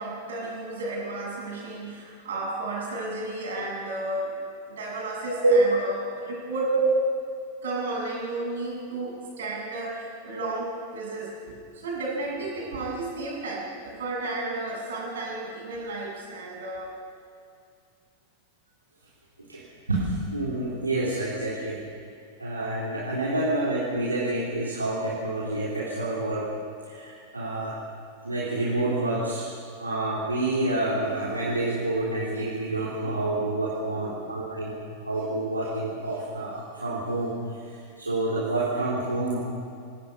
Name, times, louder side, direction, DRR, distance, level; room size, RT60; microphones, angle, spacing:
voice 1, 0.0-4.3 4.7-6.0 6.3-6.7 7.6-16.9 33.9-34.0, right 2 dB, 65° right, -2 dB, 7.7 m, -33 dB
voice 2, 5.3-5.8 6.7-6.8 19.5-21.8 22.4-26.5 26.9-27.8 28.2-29.5 29.8-34.8 35.0-39.6, right 2 dB, 80° right, -7 dB, 3.5 m, -28 dB
28.5 x 18.0 x 5.6 m, 2.4 s
figure-of-eight pair, 90°, 0 cm